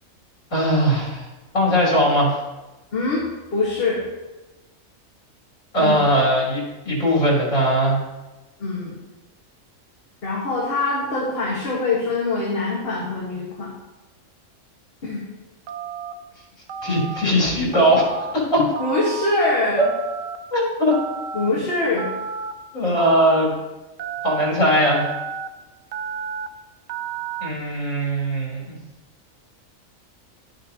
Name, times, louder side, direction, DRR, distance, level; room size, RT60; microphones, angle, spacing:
voice 1, 0.5-1.3 1.5-2.4 5.7-8.0 16.8-18.1 18.3-18.6 19.8-19.9 20.5-21.0 21.8-21.9 22.7-23.5 24.2-25.1 27.4-28.8, equal, 65° left, -4 dB, 3.6 m, -19 dB
voice 2, 2.9-3.2 3.5-4.0 5.8-6.0 8.6-8.9 10.2-13.7 15.0-15.2 18.6-19.8 21.3-22.1, left 3 dB, 45° left, -4 dB, 1.7 m, -23 dB
Telephone, 15.7-16.1 16.7-17.2 17.7-18.3 18.8-19.3 19.8-20.4 20.9-21.5 22.0-22.5 23.0-23.5 24.0-24.5 24.9-25.5 25.9-26.5 26.9-27.5, right 7 dB, 80° right, 1.1 m, -31 dB
11.5 x 9.2 x 2.9 m, 1.1 s
omnidirectional pair, 1.4 m